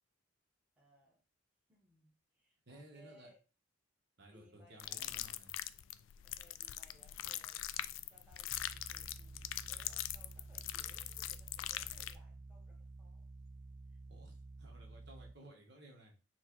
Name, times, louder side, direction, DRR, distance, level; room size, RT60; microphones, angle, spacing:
voice 1, 0.8-1.2 1.7-3.4 4.2-5.4 6.2-13.3 13.9-14.0, equal, 5° right, -2 dB, 1.2 m, -66 dB
voice 2, 2.7-3.3 4.2-5.5 14.1-14.3 14.6-16.1, right 1 dB, 60° right, 1 dB, 1.3 m, -57 dB
sound 1, 4.8-12.2, left 13 dB, 75° left, 0.3 m, -42 dB
sound 2, 8.5-15.3, right 2 dB, 40° right, 0.4 m, -52 dB
4.5 x 2.4 x 4.5 m, 0.33 s
head